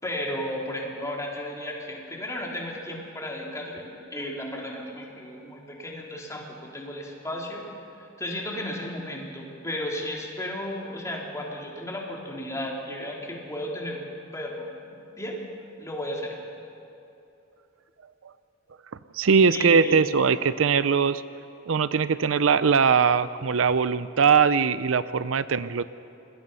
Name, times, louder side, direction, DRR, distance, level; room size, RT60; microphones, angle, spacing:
voice 1, 0.0-7.6 8.0-15.4 15.8-16.3 19.5-20.0, left 1 dB, 15° left, -2 dB, 3.5 m, -34 dB
voice 2, 19.1-21.2 21.7-25.8, right 6 dB, 75° right, 15 dB, 0.5 m, -21 dB
26.5 x 20.5 x 5.6 m, 2.7 s
head